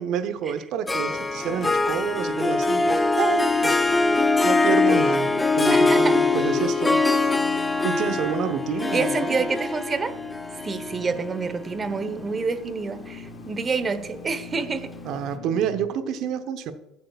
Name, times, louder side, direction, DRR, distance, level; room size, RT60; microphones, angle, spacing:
voice 1, 0.0-3.8 4.4-7.0 7.8-9.5 15.0-16.7, right 8 dB, 60° right, 10 dB, 0.9 m, -28 dB
Harp, 0.9-12.3, left 3 dB, 15° left, 0.9 m, -23 dB
sound 1, 1.5-15.8, left 4 dB, 70° left, 2.3 m, -44 dB
voice 2, 5.7-6.2 8.9-10.1 10.6-14.9, right 4 dB, 30° right, 12 dB, 1.1 m, -27 dB
15.5 x 8.2 x 2.4 m, 0.94 s
hypercardioid pair, 70°, 0 cm